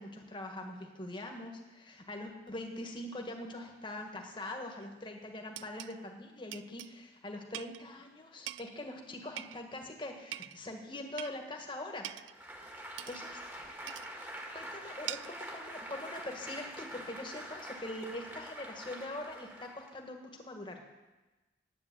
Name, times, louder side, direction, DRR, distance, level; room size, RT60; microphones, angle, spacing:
voice 1, 0.0-12.2 13.1-13.4 14.5-20.8, left 1 dB, 25° left, 2 dB, 1.5 m, -43 dB
sound 1, 4.8-4.9 5.6-6.0 6.5-6.9 7.5-7.8 8.5-8.8 9.4-9.8 10.3-10.6 11.2-11.4 12.0-12.4 13.0-13.2 13.9-14.1 15.1-15.4, right 13 dB, 80° right, 0.3 m, -43 dB
Applause, 12.3-20.0, right 1 dB, 10° right, 1.6 m, -45 dB
10.5 x 9.4 x 7.8 m, 1.1 s
head